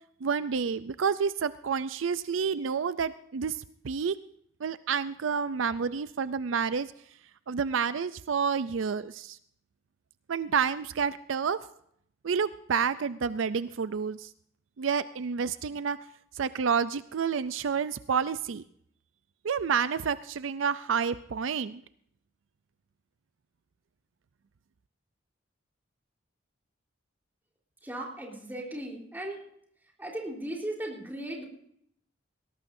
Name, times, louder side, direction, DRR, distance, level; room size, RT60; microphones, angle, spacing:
voice 1, 0.2-3.6 3.8-4.2 4.6-6.9 7.5-9.4 10.3-11.6 12.2-14.3 14.8-16.0 16.4-18.6 19.4-21.8, right 6 dB, 75° right, 15 dB, 0.5 m, -29 dB
voice 2, 27.8-29.4 30.0-31.5, right 1 dB, 10° right, -1 dB, 3.8 m, -37 dB
19.5 x 17.5 x 2.7 m, 0.67 s
head